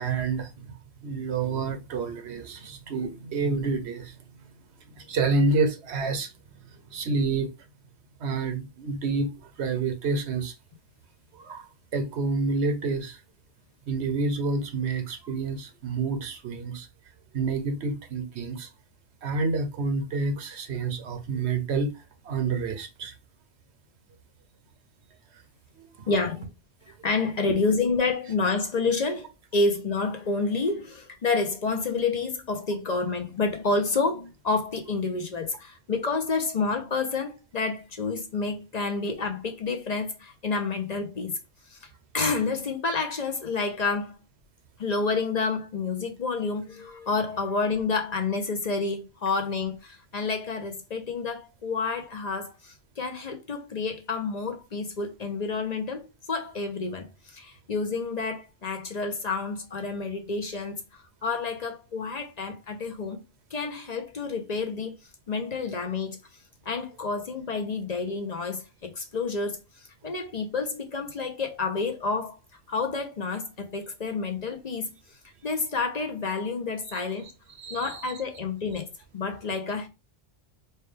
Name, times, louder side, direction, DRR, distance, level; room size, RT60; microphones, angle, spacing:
voice 1, 0.0-4.1 4.9-6.3 6.9-7.5 8.2-10.5 11.3-13.2 13.9-16.9 17.3-18.7 19.2-23.1 25.8-26.1 26.9-27.0 76.9-77.0 77.5-78.1, right 4 dB, 85° right, 1.1 m, -29 dB
voice 2, 26.1-26.4 27.0-41.4 41.7-41.9 42.1-44.2 44.8-63.2 63.5-65.0 65.3-66.2 66.7-69.6 70.0-72.4 72.7-74.9 75.4-77.3 77.7-78.9 79.1-79.9, left 4 dB, 45° left, 0.7 m, -29 dB
4.5 x 2.2 x 3.2 m
omnidirectional pair, 1.1 m